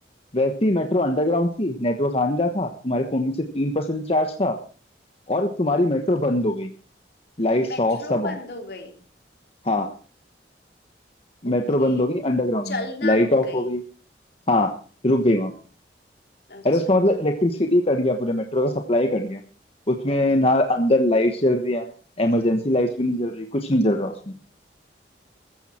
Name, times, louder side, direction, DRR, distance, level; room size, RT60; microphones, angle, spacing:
voice 1, 0.3-4.6 5.3-6.7 7.4-8.4 9.6-9.9 11.4-13.8 14.5-14.7 15.0-15.5 16.6-19.4 19.9-21.8 22.2-24.3, left 1 dB, 35° left, 5 dB, 1.3 m, -22 dB
voice 2, 7.6-9.0 11.4-12.1 12.7-13.7 16.5-16.8 20.1-20.5, left 2 dB, 65° left, 4 dB, 3.5 m, -35 dB
15.0 x 14.0 x 4.4 m, 0.39 s
head